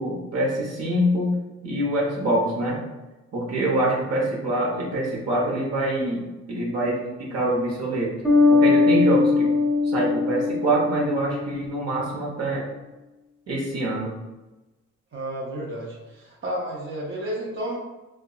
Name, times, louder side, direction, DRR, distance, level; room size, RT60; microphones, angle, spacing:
voice 1, 0.0-1.3 1.6-2.8 3.3-8.1 8.5-9.5 9.8-12.6 13.5-14.2, right 1 dB, 55° right, -3 dB, 0.9 m, -25 dB
Bass guitar, 8.2-11.8, left 3 dB, ahead, 0.7 m, -20 dB
voice 2, 15.1-17.8, right 1 dB, 40° right, -6 dB, 0.7 m, -31 dB
2.7 x 2.2 x 2.3 m, 1.1 s
cardioid pair, 85°, 30 cm